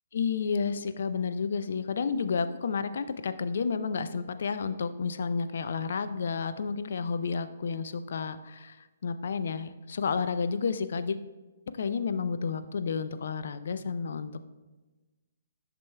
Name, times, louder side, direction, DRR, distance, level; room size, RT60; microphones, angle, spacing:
voice 1, 0.1-8.8 9.0-11.2 11.8-14.4, left 5 dB, 60° left, 11 dB, 0.4 m, -31 dB
11.0 x 5.9 x 2.2 m, 1.2 s
figure-of-eight pair, 130°, 0 cm